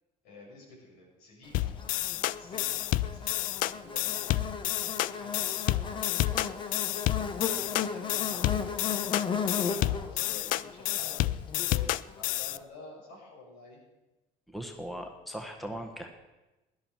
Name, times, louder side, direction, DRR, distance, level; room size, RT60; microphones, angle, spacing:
voice 1, 0.2-4.4 4.9-6.7 7.3-13.8, left 2 dB, 80° left, -2 dB, 6.2 m, -50 dB
sound 1, 1.5-12.6, left 15 dB, 60° left, 0.4 m, -30 dB
Buzz, 1.8-12.2, left 6 dB, 30° left, 1.1 m, -36 dB
voice 2, 14.5-16.1, equal, ahead, 3 dB, 1.3 m, -39 dB
17.0 x 11.0 x 4.5 m, 1.0 s
cardioid pair, 130°, 16 cm